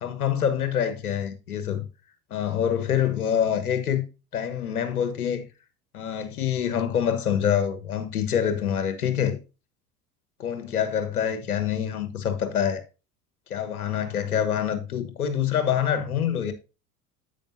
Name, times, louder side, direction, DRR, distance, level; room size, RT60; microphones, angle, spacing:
voice 1, 0.0-1.9 2.3-4.0 4.3-5.4 5.9-9.4 10.4-12.8 13.5-16.5, left 9 dB, 85° left, 1.4 m, -26 dB
10.0 x 8.3 x 2.7 m
hypercardioid pair, 75°, 43 cm